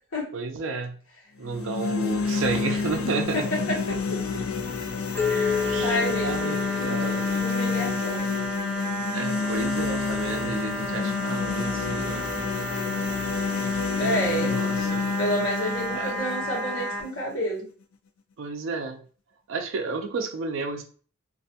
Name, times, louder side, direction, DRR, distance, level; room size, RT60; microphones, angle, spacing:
voice 1, 0.3-1.0 1.4-3.5 5.6-6.6 6.9-7.2 9.1-12.3 14.4-15.1 15.9-16.1 18.4-19.0 19.5-20.8, right 4 dB, 65° right, 5 dB, 0.4 m, -31 dB
sound 1, 1.4-17.5, left 5 dB, 70° left, 0.4 m, -29 dB
voice 2, 2.9-4.2 5.3-6.5 6.8-7.0 7.4-8.3 14.0-14.5 15.2-17.7, equal, 90° left, -2 dB, 1.1 m, -30 dB
sound 2, 5.1-17.0, right 1 dB, ahead, 0.5 m, -33 dB
sound 3, 5.2-7.6, left 6 dB, 50° left, 0.8 m, -29 dB
2.5 x 2.1 x 2.7 m, 0.40 s
head